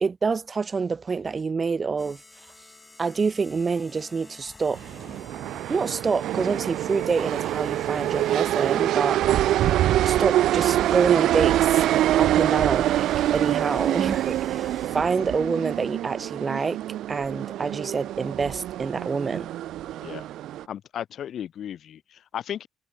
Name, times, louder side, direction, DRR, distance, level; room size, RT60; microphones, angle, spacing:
voice 1, 0.0-2.2 3.0-4.8 5.7-9.2 10.1-11.8 12.2-13.0 13.3-16.8 17.1-19.5, right 5 dB, 35° right, 0.6 m, -27 dB
sound 1, 2.0-15.4, left 3 dB, 20° left, 3.9 m, -51 dB
sound 2, 4.7-20.6, right 13 dB, 80° right, 0.4 m, -25 dB
voice 2, 20.7-22.7, left 10 dB, 65° left, 1.2 m, -35 dB
cardioid pair, 90°, 0 cm